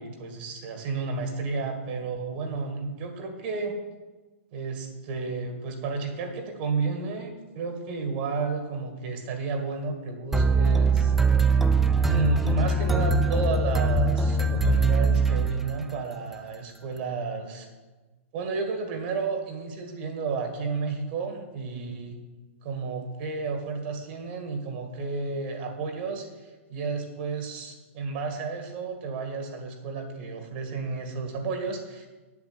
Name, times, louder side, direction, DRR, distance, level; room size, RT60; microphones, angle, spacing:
voice 1, 0.0-3.8 4.5-11.1 12.0-17.7 18.3-22.2 22.6-32.1, right 4 dB, 45° right, 4 dB, 2.0 m, -32 dB
sound 1, 10.3-16.0, right 3 dB, 5° right, 0.4 m, -22 dB
8.2 x 7.1 x 8.5 m, 1.2 s
hypercardioid pair, 160°, 7 cm